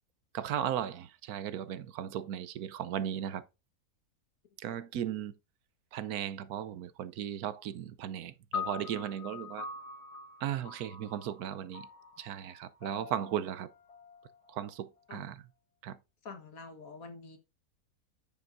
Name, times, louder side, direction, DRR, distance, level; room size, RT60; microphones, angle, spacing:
voice 1, 0.3-3.4 4.6-5.3 5.9-9.7 10.4-11.9 12.2-13.7 14.5-15.3 15.8-16.0, right 10 dB, 75° right, 1.2 m, -36 dB
sound 1, 8.5-15.0, left 6 dB, 90° left, 2.2 m, -44 dB
voice 2, 15.1-15.4 16.2-17.4, left 4 dB, 65° left, 1.8 m, -47 dB
9.7 x 7.2 x 2.5 m
omnidirectional pair, 1.6 m